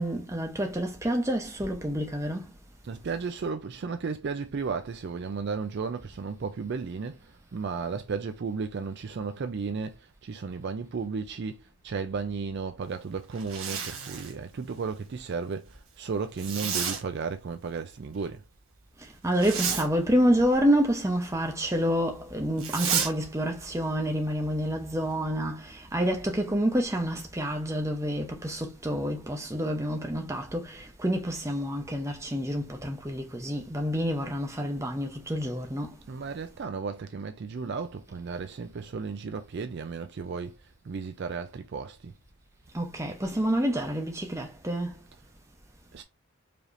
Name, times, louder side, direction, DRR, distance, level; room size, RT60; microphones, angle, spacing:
voice 1, 0.0-2.5 19.0-36.0 42.7-45.0, equal, 15° right, 0.7 m, -28 dB
voice 2, 2.8-18.4 36.1-42.1 45.9-46.0, right 5 dB, 50° right, 0.4 m, -34 dB
Zipper (clothing), 13.3-14.4 16.4-17.0 19.3-19.9 22.6-23.1, right 6 dB, 65° right, 1.1 m, -31 dB
4.9 x 2.9 x 2.5 m
head